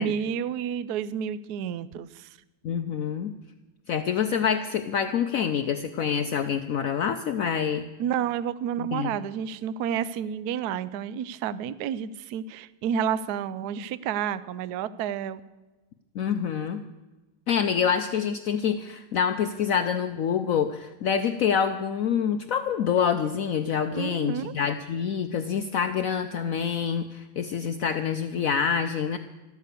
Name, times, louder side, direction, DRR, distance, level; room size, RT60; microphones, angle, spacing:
voice 1, 0.0-2.3 8.0-15.4 23.9-24.5, right 8 dB, 70° right, 16 dB, 1.0 m, -30 dB
voice 2, 2.6-3.3 3.9-7.9 8.8-9.1 16.1-16.8 17.5-29.2, left 7 dB, 80° left, 9 dB, 0.7 m, -26 dB
13.5 x 13.0 x 6.7 m, 1.1 s
omnidirectional pair, 2.2 m